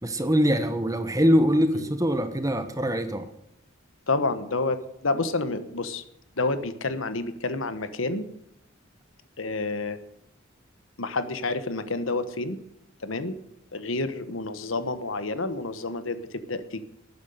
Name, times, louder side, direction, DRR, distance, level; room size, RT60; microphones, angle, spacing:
voice 1, 0.0-3.3, equal, 15° right, 9 dB, 1.2 m, -23 dB
voice 2, 4.1-6.0 6.4-8.3 9.4-10.0 11.0-12.6 13.0-13.4 13.7-16.8, left 3 dB, 80° left, 11 dB, 1.2 m, -29 dB
12.5 x 9.6 x 6.7 m, 0.79 s
head